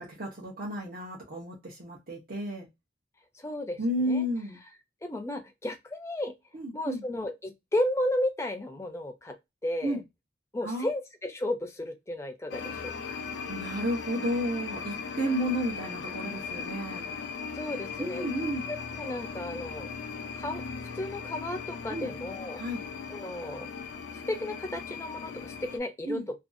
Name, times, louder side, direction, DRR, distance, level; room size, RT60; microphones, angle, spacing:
voice 1, 0.0-2.7 3.8-4.6 6.5-7.0 9.8-10.0 10.6-10.9 13.5-17.1 18.0-18.7 21.9-22.1 22.6-22.8 26.1-26.3, equal, 50° right, 0.8 m, -32 dB
voice 2, 3.4-3.8 4.1-4.2 5.0-6.3 6.7-9.3 9.6-10.0 10.5-12.9 17.5-18.3 18.7-19.9 20.4-20.6 20.9-22.6 23.1-23.7 24.3-26.2, left 1 dB, 15° left, 0.4 m, -33 dB
sound 1, 12.5-25.8, left 5 dB, 80° left, 0.4 m, -38 dB
2.6 x 2.3 x 2.5 m
head